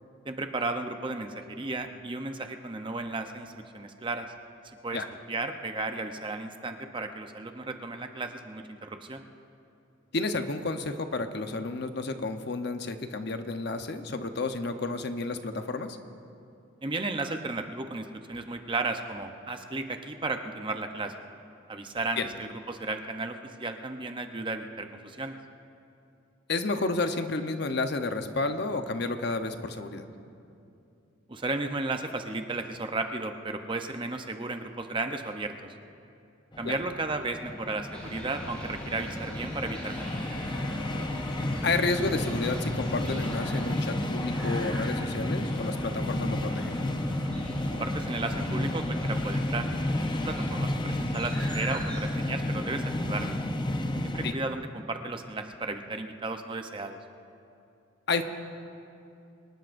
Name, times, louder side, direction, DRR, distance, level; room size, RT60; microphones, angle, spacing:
voice 1, 0.3-4.3 4.8-9.2 16.8-21.1 21.7-25.4 31.3-35.5 36.6-40.4 47.8-49.7 50.0-53.4 54.1-57.0, right 3 dB, 25° right, 6 dB, 0.7 m, -34 dB
voice 2, 10.1-16.0 22.2-22.3 26.5-30.0 36.6-36.8 41.6-46.7 54.2-54.3 58.1-58.2, left 3 dB, 55° left, 7 dB, 0.9 m, -31 dB
sound 1, 36.5-54.3, left 1 dB, 25° left, 0.6 m, -31 dB
sound 2, 37.9-52.0, equal, 5° left, 4.5 m, -42 dB
25.0 x 19.5 x 2.6 m, 2.6 s
head